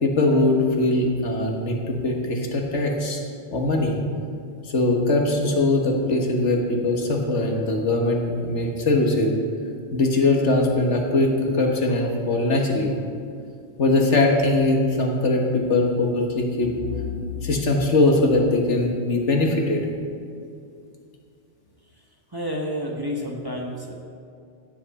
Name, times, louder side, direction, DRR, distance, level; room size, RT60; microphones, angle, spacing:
voice 1, 0.0-3.2 3.5-4.0 4.7-9.3 9.9-12.9 13.8-19.9, left 2 dB, 70° left, 1 dB, 1.6 m, -21 dB
voice 2, 21.9-23.9, equal, 20° right, -1 dB, 1.2 m, -30 dB
15.5 x 7.7 x 4.1 m, 2.5 s
omnidirectional pair, 1.2 m